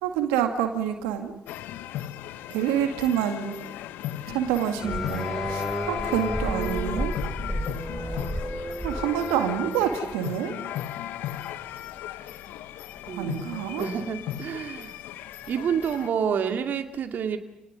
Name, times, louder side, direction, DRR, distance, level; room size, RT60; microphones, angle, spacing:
voice 1, 0.0-1.3 2.5-3.5 4.3-7.1 8.8-10.6 13.2-13.8, right 9 dB, 85° right, 6 dB, 2.2 m, -27 dB
sound 1, 1.5-16.1, left 12 dB, 80° left, 1.1 m, -36 dB
sound 2, 4.8-10.1, right 1 dB, 5° right, 3.3 m, -32 dB
voice 2, 13.1-14.9 15.5-17.4, right 7 dB, 65° right, 7 dB, 2.2 m, -29 dB
29.0 x 19.0 x 9.7 m, 0.89 s
hypercardioid pair, 50°, 3 cm